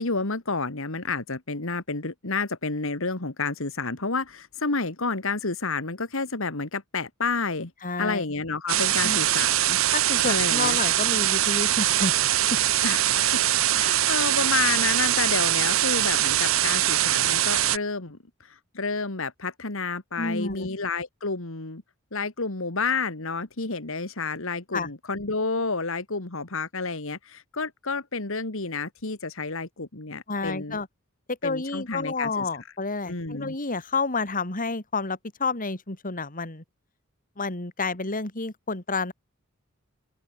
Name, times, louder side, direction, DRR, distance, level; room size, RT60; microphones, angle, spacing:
voice 1, 0.0-7.7 8.0-9.8 10.3-10.8 12.8-13.4 13.7-21.8 22.1-30.8 31.4-32.5 33.1-33.6, left 4 dB, 70° left, 2.2 m, -30 dB
voice 2, 7.8-8.2 9.0-9.2 9.9-12.6 20.2-20.7 24.7-24.9 30.3-30.9 31.3-36.6 37.4-39.1, left 3 dB, 40° left, 3.3 m, -30 dB
sound 1, 8.7-17.8, right 13 dB, 70° right, 1.1 m, -22 dB
open air
head